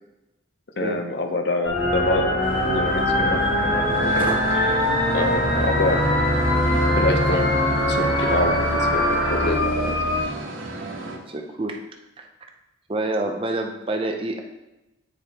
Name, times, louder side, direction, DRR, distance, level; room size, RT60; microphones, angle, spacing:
voice 1, 0.8-4.3 5.1-6.0 6.9-7.5 7.9-10.0, left 2 dB, 55° left, 5 dB, 0.7 m, -26 dB
sound 1, 1.6-10.2, left 1 dB, 30° left, 1.5 m, -24 dB
sound 2, 1.7-9.5, equal, 80° left, 1.6 m, -24 dB
sound 3, 2.4-11.2, right 2 dB, 90° right, 1.1 m, -34 dB
voice 2, 11.3-11.8 12.2-12.3 12.9-14.4, right 2 dB, 25° right, 3 dB, 0.5 m, -27 dB
8.8 x 4.9 x 2.8 m, 0.98 s
head